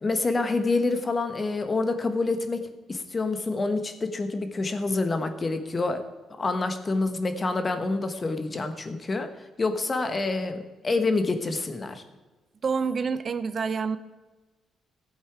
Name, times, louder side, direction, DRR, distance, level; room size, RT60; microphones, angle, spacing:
voice 1, 0.0-6.1 6.4-12.0, left 3 dB, 30° left, 8 dB, 1.4 m, -27 dB
voice 2, 12.6-14.0, right 5 dB, 45° right, 13 dB, 0.7 m, -27 dB
15.0 x 8.2 x 4.8 m, 1.3 s
cardioid pair, 90°, 0 cm